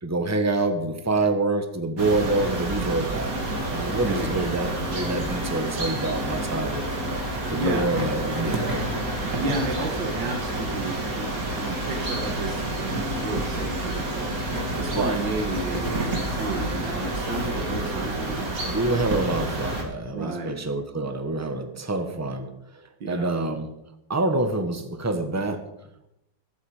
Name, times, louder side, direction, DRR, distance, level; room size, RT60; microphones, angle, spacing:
voice 1, 0.0-3.3 3.7-6.8 7.5-8.8 14.9-15.2 18.6-23.7 24.1-25.6, right 2 dB, 10° right, 7 dB, 1.0 m, -27 dB
sound 1, 2.0-19.8, right 1 dB, 50° right, 3.0 m, -29 dB
voice 2, 7.5-7.9 9.2-14.3 14.8-18.5 20.1-20.5 23.0-23.3, right 2 dB, 85° right, 1 dB, 2.2 m, -32 dB
23.5 x 8.4 x 5.0 m, 0.84 s
omnidirectional pair, 2.0 m